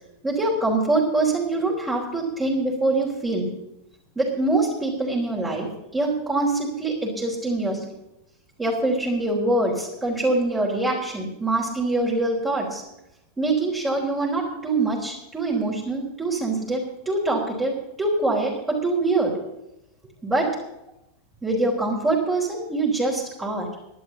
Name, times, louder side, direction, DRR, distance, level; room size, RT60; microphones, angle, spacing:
voice 1, 0.2-3.5 4.2-7.9 8.6-12.8 13.4-17.7 18.0-19.3 20.2-20.5 21.4-23.7, right 2 dB, 15° right, -4 dB, 3.7 m, -24 dB
12.0 x 11.5 x 7.4 m, 0.87 s
figure-of-eight pair, 90°, 0 cm